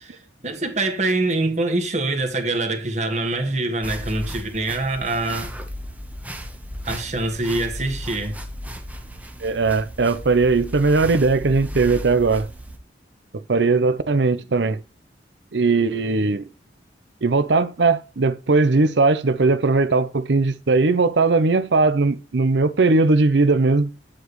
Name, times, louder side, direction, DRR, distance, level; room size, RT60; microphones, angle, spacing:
voice 1, 0.0-5.5 6.8-8.4, right 2 dB, 40° right, 1.6 m, -24 dB
sound 1, 3.8-12.8, equal, 10° right, 1.0 m, -35 dB
voice 2, 9.4-12.5 13.3-14.8 15.5-16.5 17.2-23.9, right 3 dB, 75° right, 0.7 m, -19 dB
8.3 x 7.6 x 3.1 m
head